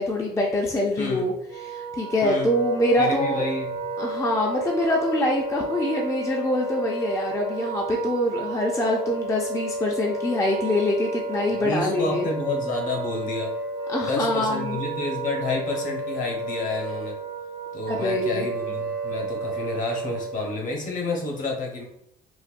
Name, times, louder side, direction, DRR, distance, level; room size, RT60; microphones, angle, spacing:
voice 1, 0.0-1.3 1.6-3.4 4.0-12.3 13.9-14.8 17.9-18.5, left 1 dB, 15° left, 0 dB, 0.4 m, -24 dB
voice 2, 1.0-1.3 2.2-2.6 3.0-3.7 11.6-13.5 14.0-17.2 17.7-21.8, left 3 dB, 50° left, 1 dB, 0.9 m, -29 dB
Wind instrument woodwind instrument, 1.5-20.6, right 3 dB, 85° right, 0.9 m, -32 dB
4.0 x 2.1 x 2.5 m, 0.76 s
cardioid pair, 110°, 17 cm